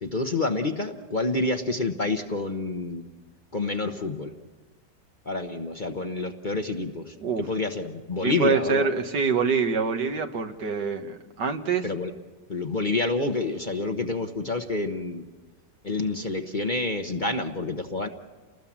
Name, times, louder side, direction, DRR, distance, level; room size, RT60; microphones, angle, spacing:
voice 1, 0.0-3.0 3.5-4.3 5.2-8.9 11.8-12.1 12.5-15.2 15.8-18.1, left 3 dB, 35° left, 5 dB, 1.0 m, -28 dB
voice 2, 8.2-11.9, right 5 dB, 75° right, 5 dB, 2.1 m, -25 dB
29.5 x 20.0 x 7.4 m, 1.4 s
omnidirectional pair, 1.8 m